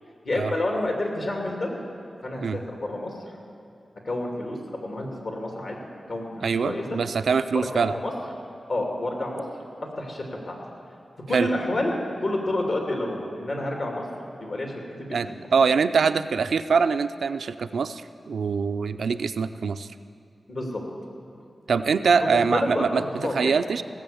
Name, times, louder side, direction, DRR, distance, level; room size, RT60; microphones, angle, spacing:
voice 1, 0.2-1.7 2.2-3.1 4.0-5.8 6.1-7.0 7.5-8.1 8.7-9.4 10.0-10.6 11.3-11.9 12.2-14.1 14.4-15.2 20.5-20.8 22.2-23.6, left 1 dB, 70° left, 0 dB, 2.6 m, -29 dB
voice 2, 6.4-7.9 11.3-11.5 15.1-19.9 21.7-23.0 23.3-23.8, right 5 dB, 85° right, 10 dB, 0.4 m, -23 dB
18.0 x 7.7 x 7.0 m, 2.6 s
cardioid pair, 50°, 0 cm